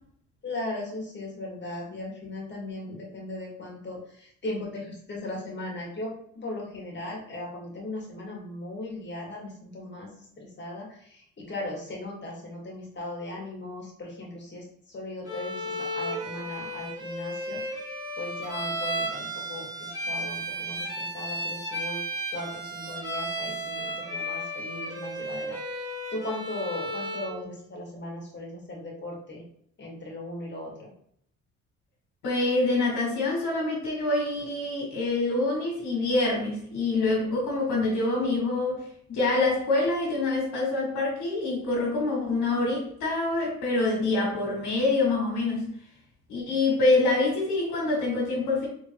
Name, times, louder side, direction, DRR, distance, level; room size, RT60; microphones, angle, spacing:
voice 1, 0.4-22.0 22.3-29.4 29.8-30.9 36.9-37.4, left 2 dB, 35° left, -2 dB, 1.8 m, -38 dB
Bowed string instrument, 15.3-27.4, equal, 10° right, 1.4 m, -34 dB
voice 2, 32.2-45.7 46.3-48.7, left 2 dB, 80° left, -5 dB, 1.8 m, -26 dB
3.8 x 3.8 x 3.1 m, 0.67 s
cardioid pair, 90°, 30 cm